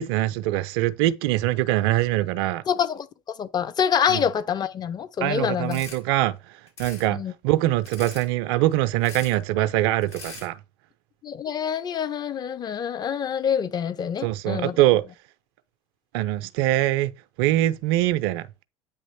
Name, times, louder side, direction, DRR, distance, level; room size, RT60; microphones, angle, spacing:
voice 1, 0.0-2.6 4.1-4.2 5.2-6.3 6.8-7.2 7.4-10.6 14.2-15.0 16.1-17.1 17.4-18.4, right 15 dB, 60° right, 0.4 m, -23 dB
voice 2, 2.7-3.1 3.4-5.8 7.1-7.3 11.2-14.8, left 8 dB, 30° left, 0.6 m, -26 dB
sound 1, 5.7-6.0 6.7-7.1 7.8-8.3 9.0-9.3 10.0-10.5, left 3 dB, 80° left, 2.6 m, -41 dB
8.5 x 3.0 x 4.1 m
figure-of-eight pair, 65°, 14 cm